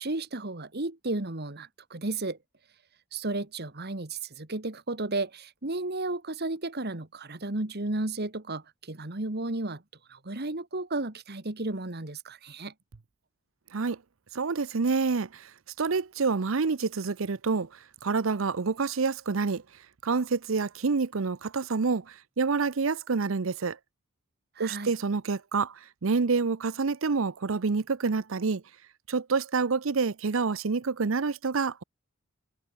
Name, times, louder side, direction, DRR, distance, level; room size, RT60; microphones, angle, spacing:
voice 1, 0.0-2.4 3.1-9.8 10.1-12.7 24.6-24.9, right 2 dB, 50° right, 1.9 m, -33 dB
voice 2, 14.3-15.5 15.8-17.7 18.0-19.6 20.0-23.8 24.6-28.6 29.1-31.8, right 4 dB, 65° right, 0.7 m, -27 dB
head